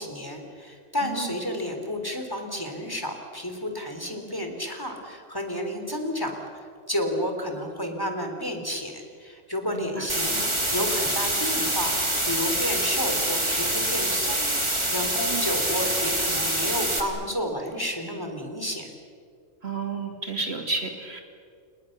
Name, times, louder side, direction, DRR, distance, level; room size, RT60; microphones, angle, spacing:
voice 1, 0.0-6.4 6.9-10.4 10.7-18.9, left 1 dB, 15° left, 3 dB, 3.8 m, -31 dB
voice 2, 1.0-1.4 9.7-10.1 15.3-15.5 19.6-21.2, right 4 dB, 55° right, 3 dB, 3.1 m, -31 dB
sound 1, 10.1-17.0, right 1 dB, 20° right, 3.3 m, -25 dB
30.0 x 29.5 x 6.8 m, 2.2 s
omnidirectional pair, 1.3 m